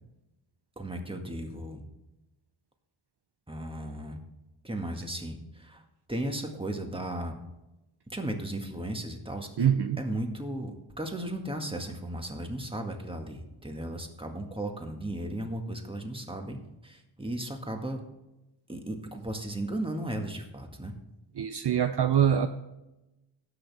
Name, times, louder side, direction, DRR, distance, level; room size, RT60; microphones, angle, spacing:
voice 1, 0.8-1.8 3.5-4.2 4.6-5.8 6.1-7.4 8.1-18.0 18.7-20.9, right 1 dB, 10° right, 3 dB, 1.8 m, -35 dB
voice 2, 9.6-10.0 21.4-22.5, right 9 dB, 55° right, 9 dB, 0.7 m, -24 dB
17.5 x 6.5 x 3.5 m, 0.97 s
wide cardioid pair, 75°, 48 cm